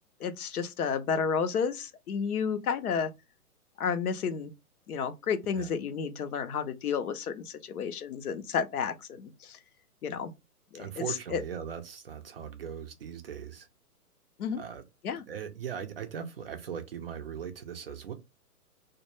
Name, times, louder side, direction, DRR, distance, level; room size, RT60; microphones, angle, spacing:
voice 1, 0.2-3.1 3.8-4.5 4.9-9.6 10.0-10.3 10.7-11.4 14.4-14.6 15.0-15.2, left 6 dB, 70° left, 0.6 m, -31 dB
voice 2, 10.7-13.7 14.6-14.8 15.3-18.1, right 8 dB, 40° right, 0.4 m, -39 dB
2.1 x 2.1 x 3.0 m
hypercardioid pair, 135°, 46 cm